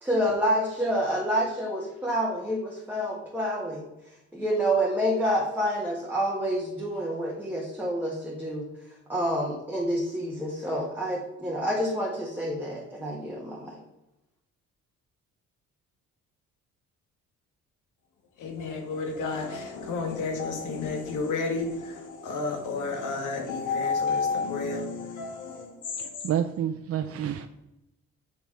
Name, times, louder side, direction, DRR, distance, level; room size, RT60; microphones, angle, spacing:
voice 1, 0.0-3.8 4.3-8.7 9.1-13.8, equal, 5° right, 1.5 m, -28 dB
voice 2, 18.4-26.2, left 4 dB, 80° left, 1.7 m, -31 dB
voice 3, 26.0-27.5, right 9 dB, 50° right, 0.5 m, -29 dB
7.1 x 4.6 x 5.4 m
cardioid pair, 90°, 30 cm